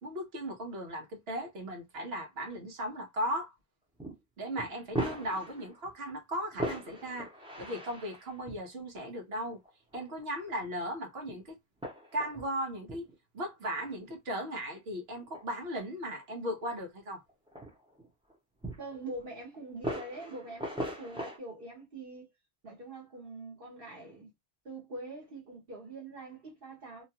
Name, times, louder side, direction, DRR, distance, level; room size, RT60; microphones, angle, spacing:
voice 1, 0.0-3.5 4.4-7.3 7.6-9.6 9.9-11.6 12.1-17.2, equal, 80° right, 1.2 m, -37 dB
sound 1, 4.0-4.2 4.6-5.9 6.5-8.6 9.7-10.3 10.6-10.7 11.3-11.4 11.8-12.5 12.9-13.1 14.1-14.2 15.1-15.4 16.2-16.3 16.7-16.8 17.3-18.4 18.6-19.2 19.8-21.4, right 1 dB, 5° right, 0.6 m, -39 dB
voice 2, 18.8-22.3 22.6-24.3 24.6-27.0, right 2 dB, 65° right, 1.4 m, -44 dB
2.9 x 2.3 x 2.8 m
omnidirectional pair, 1.0 m